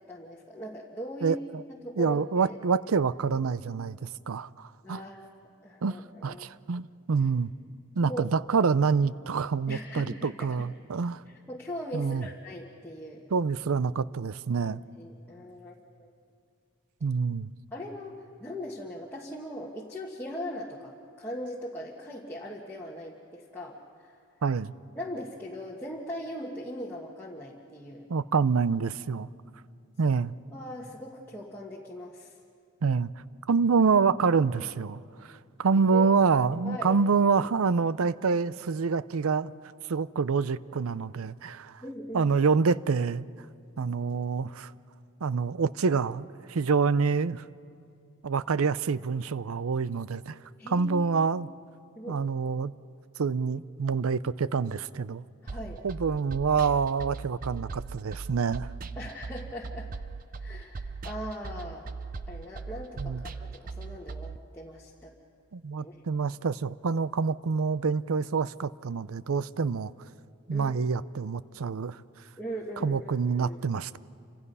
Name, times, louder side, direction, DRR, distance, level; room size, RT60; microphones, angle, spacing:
voice 1, 0.1-1.4 1.8-2.5 4.8-5.3 5.6-6.5 8.0-8.2 9.7-10.6 11.3-13.2 14.6-16.1 17.7-24.1 24.9-28.1 30.5-32.4 35.9-36.1 36.6-37.0 41.8-42.3 50.6-50.9 51.3-51.6 51.9-52.2 55.4-55.8 58.9-59.9 60.4-61.9 62.3-65.1 65.8-66.0 70.5-70.7 72.4-73.6, equal, 10° left, -5 dB, 1.5 m, -40 dB
voice 2, 1.2-1.6 2.0-5.0 5.8-6.0 6.2-7.5 8.0-11.2 11.9-12.3 13.3-14.8 17.0-17.5 24.4-24.7 28.1-29.3 30.0-30.3 32.8-33.1 33.5-39.5 39.9-41.8 42.1-43.2 43.8-44.7 45.2-47.4 48.2-50.4 50.7-51.5 52.1-52.7 53.2-55.2 55.8-58.7 63.0-63.2 65.5-69.9 70.5-72.0 72.8-74.0, right 5 dB, 85° right, 17 dB, 0.5 m, -27 dB
sound 1, 55.5-64.4, right 4 dB, 40° right, 0.6 m, -39 dB
29.0 x 26.0 x 5.5 m, 2.4 s
head